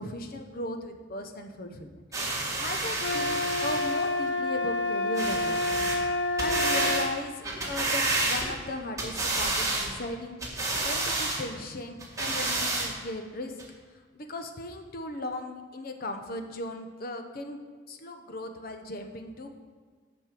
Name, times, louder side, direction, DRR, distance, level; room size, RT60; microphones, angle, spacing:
voice 1, 0.0-2.0 2.6-5.9 6.4-10.4 10.8-13.5 14.1-17.6 17.9-19.6, left 1 dB, 55° left, 6 dB, 0.9 m, -37 dB
sound 1, 2.1-4.1 5.2-6.0 6.4-7.1 7.4-8.7 9.0-9.9 10.4-11.4 12.0-12.9 13.6-13.7, right 2 dB, 20° right, 1.6 m, -29 dB
sound 2, 3.0-7.1, left 2 dB, 80° left, 0.4 m, -28 dB
7.5 x 5.4 x 7.6 m, 1.5 s
head